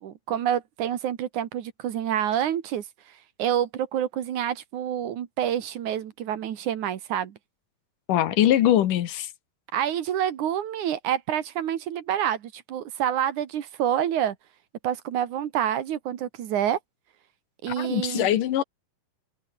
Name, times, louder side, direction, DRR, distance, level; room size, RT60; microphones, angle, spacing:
voice 1, 0.0-2.8 3.4-7.3 9.7-14.4 14.8-16.8 17.6-18.3, right 10 dB, 70° right, 2.9 m, -27 dB
voice 2, 8.1-9.3 17.7-18.6, left 12 dB, 75° left, 2.9 m, -22 dB
omnidirectional pair, 3.8 m